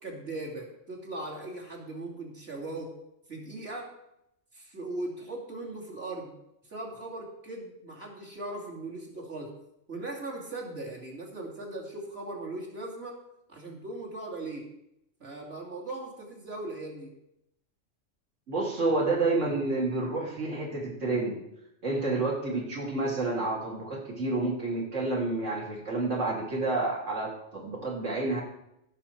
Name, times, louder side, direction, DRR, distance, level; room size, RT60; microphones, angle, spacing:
voice 1, 0.0-2.9 3.3-3.9 4.5-6.3 6.7-9.5 9.9-13.2 13.5-14.7 15.2-17.1, right 2 dB, 55° right, -2 dB, 2.8 m, -39 dB
voice 2, 18.5-21.4 21.8-28.4, right 2 dB, 75° right, -3 dB, 2.6 m, -29 dB
16.5 x 6.0 x 4.5 m, 0.81 s
omnidirectional pair, 1.3 m